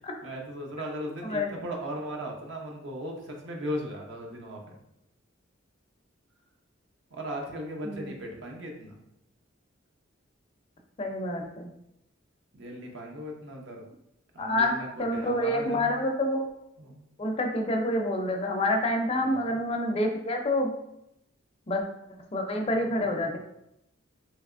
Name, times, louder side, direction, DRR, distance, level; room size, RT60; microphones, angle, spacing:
voice 1, 0.2-4.8 7.1-9.0 12.5-13.8 14.3-15.9 16.8-17.0 19.1-19.5 22.7-23.3, equal, 65° right, 1 dB, 0.6 m, -38 dB
voice 2, 1.2-1.5 7.8-8.1 11.0-11.7 14.4-16.5 17.2-20.7 21.7-21.8 22.3-23.4, left 1 dB, 30° left, 2 dB, 0.4 m, -27 dB
3.3 x 2.8 x 2.4 m, 0.82 s
head